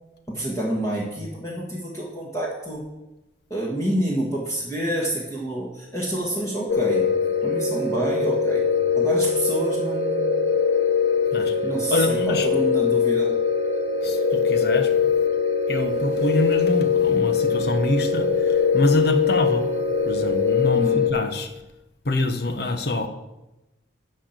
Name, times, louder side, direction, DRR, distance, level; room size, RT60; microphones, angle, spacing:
voice 1, 0.3-2.9 3.5-7.1 7.4-8.6 8.9-10.3 11.4-13.3 20.7-21.1, right 1 dB, 15° left, -4 dB, 1.6 m, -28 dB
sound 1, 6.7-21.1, left 5 dB, 75° left, 0.9 m, -22 dB
voice 2, 11.9-12.5 14.0-14.9 15.7-19.7 20.0-21.5 22.0-23.1, left 1 dB, 55° left, 8 dB, 1.0 m, -25 dB
12.5 x 4.3 x 8.1 m, 0.99 s
head